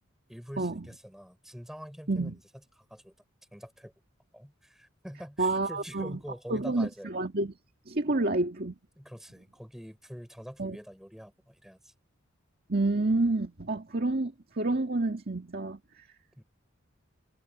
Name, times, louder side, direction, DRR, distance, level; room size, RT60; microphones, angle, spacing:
voice 1, 0.3-2.4 2.9-3.1 3.5-3.9 4.3-7.1 8.1-8.4 9.0-11.9 16.3-16.4, equal, ahead, 5.9 m, -45 dB
voice 2, 5.4-6.2 6.5-7.5 7.9-8.8 10.6-10.8 12.7-15.8, right 2 dB, 50° right, 2.0 m, -29 dB
head